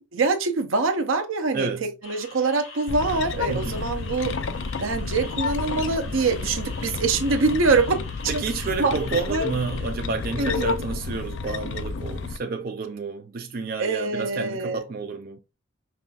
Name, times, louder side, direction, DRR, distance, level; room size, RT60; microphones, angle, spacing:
voice 1, 0.1-4.4 4.8-8.4 8.8-9.0 9.3-9.5 10.4-10.8 13.8-14.8, right 3 dB, 85° right, 0.7 m, -24 dB
voice 2, 1.5-1.9 3.5-4.0 8.3-15.4, right 4 dB, 45° right, 0.4 m, -30 dB
sound 1, 2.0-9.9, left 3 dB, 90° left, 2.4 m, -44 dB
sound 2, 2.9-12.4, left 4 dB, 65° left, 0.4 m, -30 dB
5.6 x 2.5 x 2.3 m
head